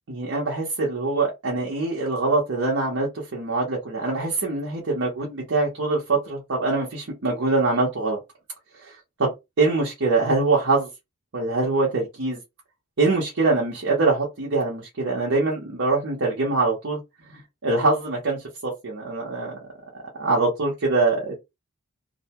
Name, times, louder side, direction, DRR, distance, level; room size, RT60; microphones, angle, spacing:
voice 1, 0.1-8.2 8.8-9.3 9.6-10.9 11.3-12.4 13.0-17.0 17.3-19.5 20.2-21.4, right 3 dB, 65° right, 0.8 m, -24 dB
2.7 x 2.1 x 2.8 m
head